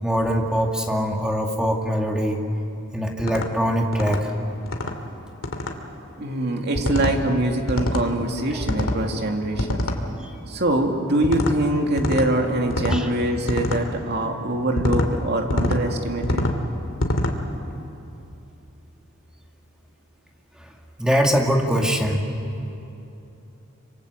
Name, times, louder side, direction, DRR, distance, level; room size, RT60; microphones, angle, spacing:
voice 1, 0.0-2.4 2.9-4.3 10.2-10.3 12.9-13.1 20.6-20.7 21.0-22.2, equal, 5° right, 1 dB, 2.2 m, -22 dB
sound 1, 3.2-3.5 3.9-4.2 4.7-4.9 5.4-5.7 6.8-7.2 7.7-8.1 8.6-9.0 9.6-10.0 11.2-11.6 12.0-12.3 12.7-13.0 13.5-13.8 14.8-15.1 15.5-15.8 16.2-16.6 17.0-17.4, left 1 dB, 85° left, 2.4 m, -24 dB
voice 2, 6.2-9.9 10.5-16.4, right 1 dB, 50° right, 3 dB, 2.6 m, -24 dB
26.5 x 26.5 x 8.1 m, 2.8 s
head